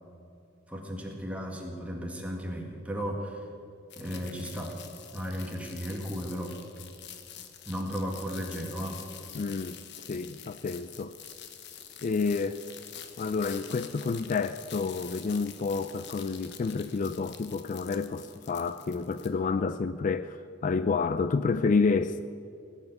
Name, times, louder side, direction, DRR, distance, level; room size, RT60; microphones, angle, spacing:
voice 1, 0.7-3.4 4.0-4.8 5.1-6.6 7.7-9.0, equal, 5° right, 0 dB, 1.9 m, -35 dB
sound 1, 3.9-19.3, left 9 dB, 60° left, 1.1 m, -47 dB
voice 2, 9.3-9.8 10.1-11.1 12.0-12.6 13.2-22.2, left 4 dB, 40° left, 12 dB, 0.3 m, -29 dB
18.0 x 7.4 x 7.9 m, 2.5 s
head